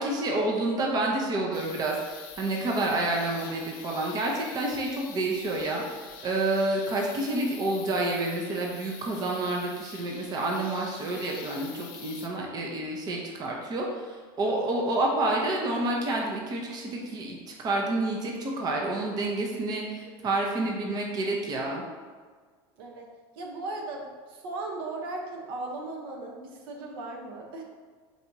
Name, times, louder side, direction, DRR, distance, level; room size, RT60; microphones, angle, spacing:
voice 1, 0.0-21.8, right 2 dB, 35° right, -1 dB, 0.8 m, -29 dB
sound 1, 1.5-12.3, left 7 dB, 70° left, 0.6 m, -46 dB
voice 2, 22.8-23.1 23.3-27.6, right 2 dB, 80° right, 0 dB, 0.8 m, -37 dB
4.1 x 2.7 x 4.6 m, 1.5 s
supercardioid pair, 135°, 12 cm